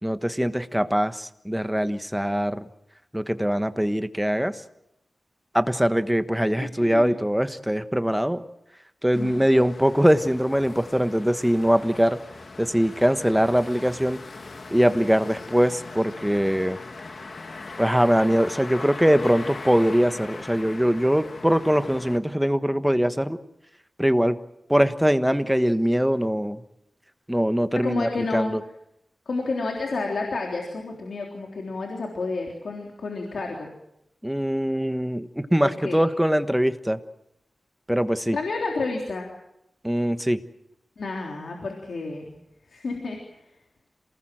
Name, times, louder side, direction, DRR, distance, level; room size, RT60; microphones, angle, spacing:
voice 1, 0.0-2.7 3.1-4.6 5.5-8.4 9.0-12.2 12.6-14.2 14.7-16.8 17.8-23.4 24.0-24.4 24.7-26.6 27.3-28.6 34.2-37.0 37.9-38.4 39.8-40.4, equal, 5° right, 10 dB, 1.3 m, -22 dB
voice 2, 6.6-7.1 9.2-9.4 27.8-28.6 29.3-33.7 35.6-36.0 38.3-39.3 41.0-42.3 42.7-43.4, left 3 dB, 85° left, 1 dB, 3.6 m, -30 dB
sound 1, 9.1-22.2, left 3 dB, 60° left, 1.8 m, -40 dB
27.5 x 19.0 x 7.7 m, 0.83 s
wide cardioid pair, 75°, 0 cm